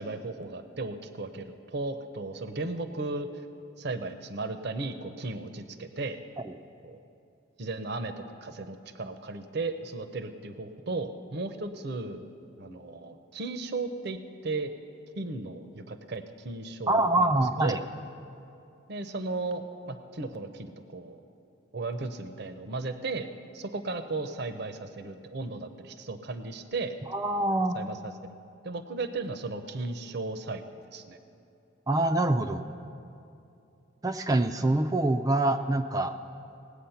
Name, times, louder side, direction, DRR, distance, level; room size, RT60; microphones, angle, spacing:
voice 1, 0.0-3.3 3.8-6.2 6.8-7.0 7.6-12.3 12.6-14.2 14.4-14.7 15.2-17.8 18.9-21.2 21.7-23.3 23.5-27.0 27.7-28.0 28.6-31.2, right 3 dB, 55° right, 9 dB, 0.6 m, -35 dB
voice 2, 16.9-17.8 27.1-27.8 31.9-32.6 34.0-36.1, right 2 dB, 15° right, 8 dB, 0.3 m, -25 dB
19.0 x 8.3 x 5.7 m, 2.7 s
head